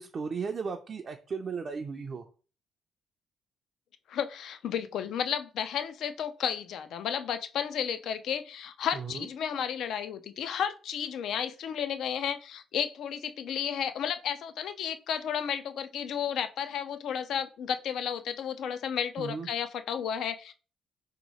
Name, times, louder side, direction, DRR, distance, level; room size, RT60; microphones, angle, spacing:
voice 1, 0.0-2.3 8.9-9.3 19.2-19.5, right 5 dB, 45° right, 3 dB, 0.4 m, -35 dB
voice 2, 4.1-20.5, left 8 dB, 75° left, 11 dB, 0.3 m, -32 dB
2.8 x 2.3 x 4.1 m, 0.36 s
cardioid pair, 90°, 0 cm